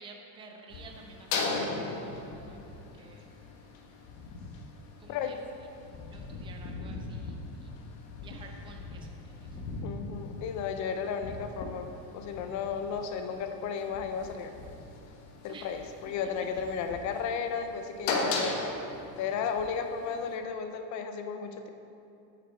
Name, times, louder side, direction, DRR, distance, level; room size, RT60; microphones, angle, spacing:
voice 1, 0.0-3.3 5.0-5.4 6.0-7.7 8.2-9.6 15.5-15.9, right 3 dB, 10° right, 2 dB, 0.4 m, -52 dB
sound 1, 0.7-20.4, left 3 dB, 75° left, 1.3 m, -39 dB
voice 2, 5.1-5.4 9.8-14.5 15.4-18.7 19.2-21.7, left 6 dB, 35° left, 7 dB, 0.6 m, -34 dB
8.1 x 5.6 x 4.4 m, 2.7 s
supercardioid pair, 135°, 49 cm